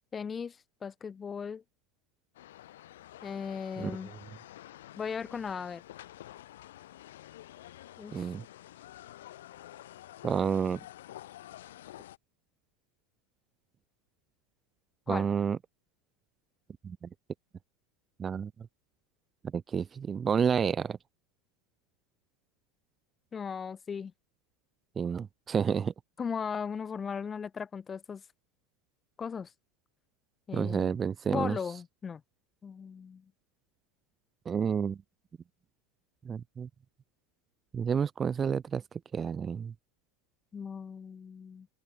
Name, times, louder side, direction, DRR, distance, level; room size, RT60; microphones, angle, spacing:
voice 1, 0.1-0.6 0.8-1.6 3.2-4.1 5.0-5.8 8.0-8.3 15.1-15.3 23.3-24.1 26.2-28.2 29.2-29.5 30.5-31.0 31.3-32.2 32.6-33.2 40.5-41.7, left 6 dB, 20° left, 2.0 m, -37 dB
sound 1, 2.3-12.2, left 13 dB, 90° left, 5.0 m, -49 dB
voice 2, 8.1-8.4 10.2-10.8 15.1-15.6 16.8-17.1 18.2-18.5 19.5-21.0 25.0-25.9 30.5-31.6 34.4-35.0 36.2-36.7 37.7-38.8 39.1-39.7, right 7 dB, 20° right, 1.2 m, -30 dB
open air
supercardioid pair, 150°, 0 cm